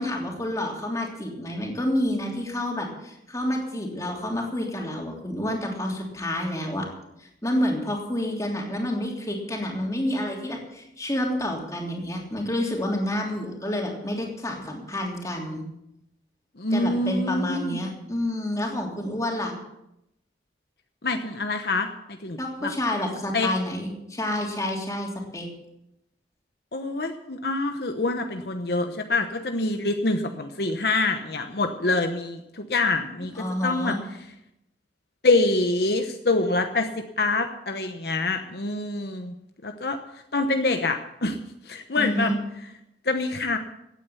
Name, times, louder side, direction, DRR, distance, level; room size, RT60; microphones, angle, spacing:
voice 1, 0.0-6.9 7.2-15.6 16.7-19.6 22.4-25.5 33.3-34.0 41.9-42.4, left 1 dB, 20° left, 0 dB, 3.1 m, -29 dB
voice 2, 16.6-17.8 21.0-21.9 22.2-22.7 23.3-23.5 26.7-33.9 35.2-36.9 37.2-39.3 39.6-40.0 40.3-41.4 41.7-42.3 43.0-43.6, left 2 dB, 65° left, 6 dB, 1.0 m, -25 dB
16.5 x 9.2 x 7.0 m, 0.83 s
head